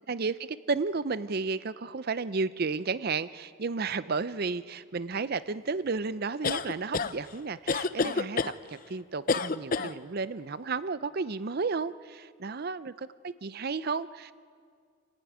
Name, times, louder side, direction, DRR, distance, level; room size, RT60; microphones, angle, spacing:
voice 1, 0.1-14.3, right 4 dB, 45° right, 15 dB, 0.5 m, -33 dB
sound 1, 6.4-7.1 7.7-8.5 9.3-9.9, left 4 dB, 40° left, 0.6 m, -28 dB
29.0 x 15.0 x 9.3 m, 2.1 s
head